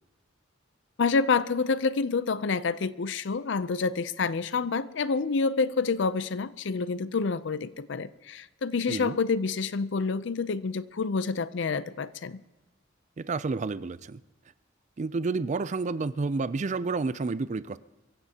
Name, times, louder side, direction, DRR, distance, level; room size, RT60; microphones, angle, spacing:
voice 1, 1.0-12.4, left 4 dB, 65° left, 0.5 m, -28 dB
voice 2, 8.9-9.2 13.2-14.2 15.0-17.8, right 3 dB, 35° right, 0.4 m, -30 dB
23.5 x 15.0 x 2.9 m
head